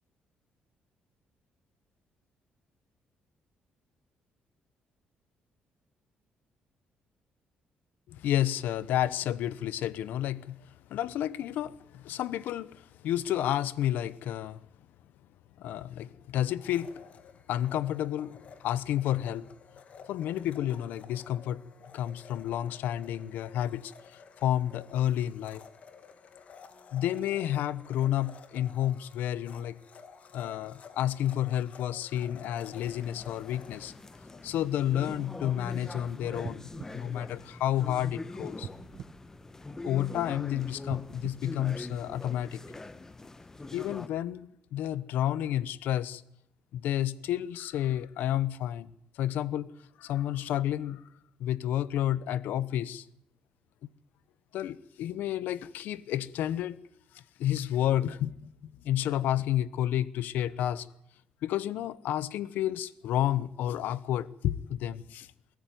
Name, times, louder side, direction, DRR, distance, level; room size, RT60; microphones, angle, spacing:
voice 1, 8.1-10.6 10.9-14.6 15.6-16.9 17.5-19.4 20.1-21.6 21.9-23.9 24.4-25.6 26.9-29.8 30.3-33.9 34.4-38.7 39.8-42.6 43.7-46.2 46.7-48.9 49.2-49.7 50.0-51.0 51.4-53.0 54.5-56.8 57.4-58.5 58.8-60.9 61.4-65.3, left 12 dB, 85° left, 0.9 m, -30 dB
Domestic sounds home sounds, 16.5-35.3, left 6 dB, 45° left, 1.9 m, -53 dB
sound 1, 32.7-44.1, left 2 dB, 15° left, 1.0 m, -43 dB
sound 2, 36.4-38.1 38.6-40.2 40.8-42.5 43.0-43.1, right 10 dB, 65° right, 1.0 m, -47 dB
22.0 x 14.0 x 9.3 m
cardioid pair, 115°, 3 cm